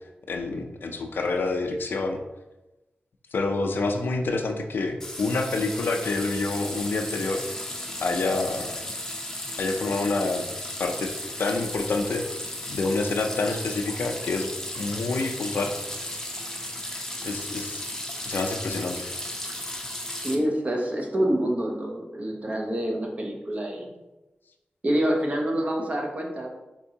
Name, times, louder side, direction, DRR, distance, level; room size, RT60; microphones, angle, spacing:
voice 1, 0.3-2.2 3.3-7.4 8.0-8.8 9.6-10.4 10.8-11.1 11.4-12.3 12.7-14.5 14.8-15.7 17.2-17.8 18.3-19.1, left 3 dB, 75° left, 4 dB, 0.4 m, -27 dB
sound 1, 5.0-20.4, left 1 dB, 15° left, 0.6 m, -35 dB
voice 2, 20.2-24.0 24.8-26.5, right 1 dB, 40° right, 1 dB, 0.7 m, -27 dB
4.4 x 2.7 x 2.7 m, 1.0 s
cardioid pair, 55°, 4 cm